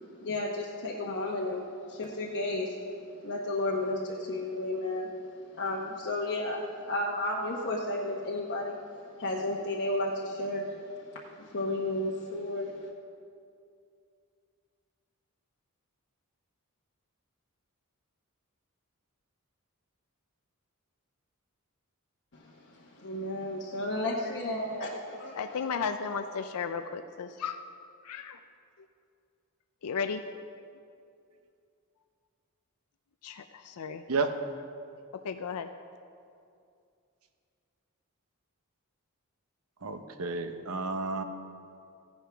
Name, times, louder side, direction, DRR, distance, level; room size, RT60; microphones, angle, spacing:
voice 1, 0.2-2.8 3.2-5.1 5.5-8.8 9.2-12.9 22.3-25.7, left 1 dB, 55° left, -3 dB, 1.0 m, -33 dB
voice 2, 25.4-27.6 28.1-28.4 29.8-30.2 33.2-34.0 35.2-35.7, left 6 dB, 85° left, 8 dB, 0.5 m, -34 dB
voice 3, 39.8-41.2, right 3 dB, 70° right, 8 dB, 0.8 m, -31 dB
15.5 x 10.5 x 3.5 m, 2.4 s
head